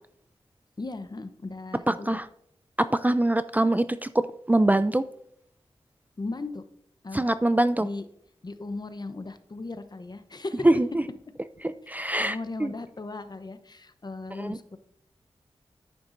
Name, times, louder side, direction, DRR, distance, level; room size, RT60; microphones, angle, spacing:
voice 1, 0.8-2.2 6.2-6.6 7.0-7.2 7.8-8.0 8.4-10.7 12.2-14.8, left 3 dB, 40° left, 10 dB, 0.8 m, -37 dB
voice 2, 1.9-2.3 2.9-4.2 4.5-5.0 7.1-7.9 10.6-11.0 11.6-12.7 14.4-14.6, right 1 dB, 15° right, 12 dB, 0.4 m, -23 dB
9.9 x 9.8 x 2.6 m, 0.69 s
cardioid pair, 50°, 11 cm